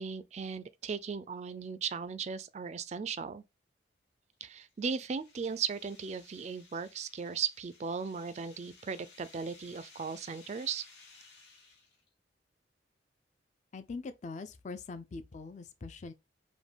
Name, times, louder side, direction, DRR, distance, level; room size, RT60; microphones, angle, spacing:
voice 1, 0.0-3.4 4.4-10.9, right 6 dB, 40° right, 0.3 m, -37 dB
sound 1, 4.3-12.1, left 4 dB, 65° left, 2.3 m, -58 dB
voice 2, 13.7-16.1, left 3 dB, 40° left, 0.4 m, -42 dB
5.1 x 2.2 x 3.3 m
head